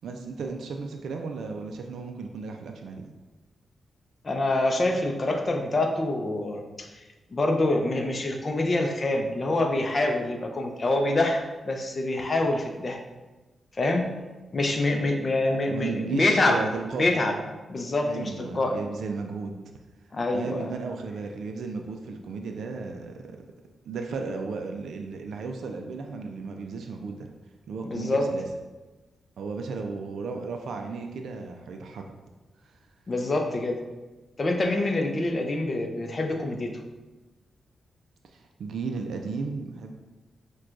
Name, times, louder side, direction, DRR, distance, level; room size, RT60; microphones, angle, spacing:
voice 1, 0.0-3.0 15.7-17.2 18.1-19.6 20.3-23.4 23.9-27.3 27.7-28.4 29.4-32.1 32.6-32.7 38.3-39.9, right 4 dB, 85° right, 4 dB, 0.3 m, -34 dB
voice 2, 4.2-6.9 7.3-13.0 13.8-14.0 14.5-16.6 17.0-17.3 17.7-18.8 20.1-20.7 27.8-28.3 33.1-33.8 34.4-36.8, left 2 dB, 35° left, 3 dB, 0.5 m, -26 dB
5.9 x 2.2 x 2.5 m, 1.2 s
cardioid pair, 100°, 0 cm